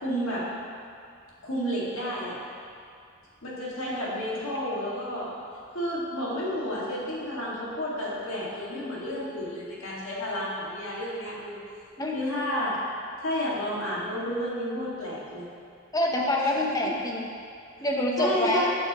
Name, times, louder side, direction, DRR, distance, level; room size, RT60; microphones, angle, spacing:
voice 1, 0.0-0.5 1.4-2.4 3.4-5.3 5.7-11.6 12.1-12.8 13.2-15.5 18.2-18.7, equal, 70° left, -6 dB, 2.0 m, -31 dB
voice 2, 15.9-17.3 17.8-18.7, left 1 dB, 15° left, -1 dB, 0.8 m, -26 dB
11.5 x 6.3 x 3.0 m, 2.4 s
head